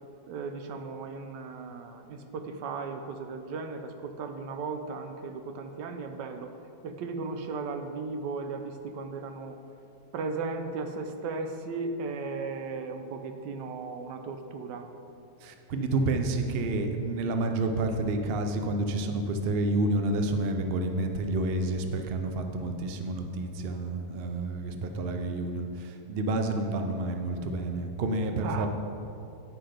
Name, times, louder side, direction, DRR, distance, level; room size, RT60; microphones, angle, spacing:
voice 1, 0.3-6.5 6.8-9.5 10.1-14.9 28.4-28.7, right 4 dB, 85° right, 7 dB, 1.3 m, -36 dB
voice 2, 15.4-28.7, right 2 dB, 55° right, 5 dB, 0.6 m, -29 dB
10.5 x 5.8 x 5.0 m, 2.7 s
omnidirectional pair, 1.8 m